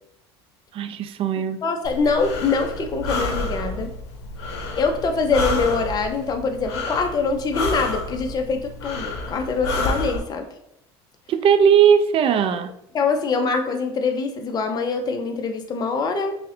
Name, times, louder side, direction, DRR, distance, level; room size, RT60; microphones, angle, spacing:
voice 1, 0.7-1.6 11.3-12.7, right 8 dB, 45° right, 0.4 m, -18 dB
voice 2, 1.6-3.9 4.7-10.4 12.9-16.3, left 4 dB, 30° left, 0.5 m, -24 dB
Breathing, 1.8-10.2, left 2 dB, 80° left, 0.6 m, -29 dB
5.3 x 2.1 x 2.5 m
hypercardioid pair, 85°, 14 cm